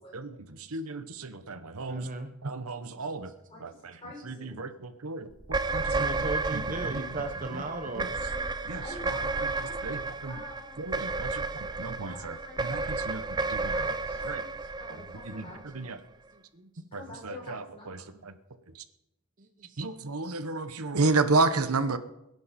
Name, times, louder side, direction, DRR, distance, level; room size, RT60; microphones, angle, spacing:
voice 1, 0.1-2.1 2.4-3.3 3.6-3.9 4.2-7.0 7.5-7.6 8.0-8.1 8.6-10.4 10.8-13.2 13.5-13.9 14.2-14.4 15.1-16.0 16.9-18.4 18.7-18.8 19.8-22.0, right 3 dB, 80° right, 11 dB, 1.0 m, -32 dB
voice 2, 1.9-2.3 5.9-8.2 11.3-11.7 15.3-15.9 16.3-16.7 19.4-19.8, right 2 dB, 35° right, 6 dB, 0.9 m, -38 dB
voice 3, 3.5-4.6 8.8-9.9 10.3-10.8 12.1-12.9 13.2-14.5 14.8-15.6 16.9-18.0, left 1 dB, 25° left, -4 dB, 6.6 m, -47 dB
sound 1, 5.4-15.9, right 3 dB, 20° right, 0.5 m, -32 dB
22.0 x 10.5 x 4.3 m, 0.88 s
head